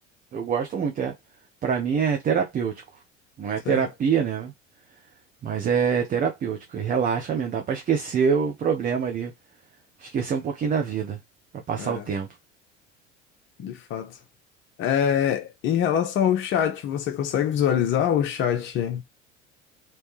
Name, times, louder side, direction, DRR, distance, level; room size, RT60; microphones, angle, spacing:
voice 1, 0.3-1.1 1.6-2.7 3.4-4.5 5.4-9.3 10.0-11.2 11.7-12.3, right 6 dB, 25° right, 0.6 m, -25 dB
voice 2, 13.6-14.1 14.8-19.0, left 9 dB, 35° left, 0.6 m, -24 dB
3.2 x 2.9 x 3.0 m
figure-of-eight pair, 65°, 36 cm